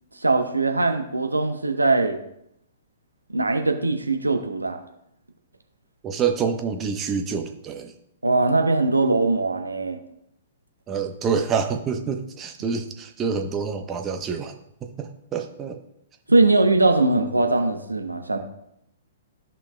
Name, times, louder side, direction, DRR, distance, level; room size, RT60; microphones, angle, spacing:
voice 1, 0.2-2.2 3.3-4.8 8.2-10.0 16.3-18.4, right 2 dB, 85° right, 5 dB, 0.9 m, -21 dB
voice 2, 6.0-7.9 10.9-15.8, right 6 dB, 20° right, 5 dB, 0.9 m, -27 dB
13.5 x 5.7 x 2.2 m, 0.77 s
figure-of-eight pair, 115°, 0 cm